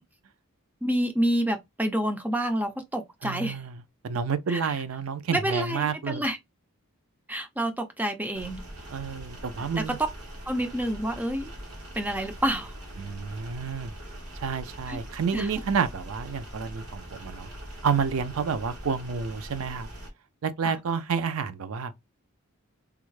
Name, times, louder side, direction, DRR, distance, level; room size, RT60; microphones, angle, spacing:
voice 1, 0.8-3.6 4.5-4.7 5.3-6.4 7.3-8.6 10.5-11.5 11.9-12.7 14.9-15.0 15.3-15.5 20.6-20.8, right 1 dB, 10° right, 0.4 m, -28 dB
voice 2, 3.2-6.2 8.9-10.0 13.0-13.9 14.4-17.5 17.8-19.9 20.4-21.9, right 6 dB, 70° right, 0.4 m, -29 dB
sound 1, 8.3-20.1, equal, 90° right, 1.1 m, -42 dB
3.5 x 2.1 x 3.1 m
head